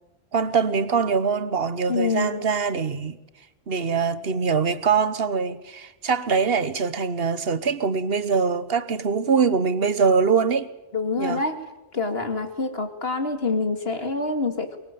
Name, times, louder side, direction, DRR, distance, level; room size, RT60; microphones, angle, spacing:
voice 1, 0.3-3.2 3.7-10.7 11.2-11.4, right 5 dB, 60° right, 1.4 m, -23 dB
voice 2, 1.9-2.4 10.9-11.5 11.9-14.8, left 3 dB, 60° left, 2.8 m, -26 dB
23.0 x 23.0 x 9.2 m
omnidirectional pair, 1.1 m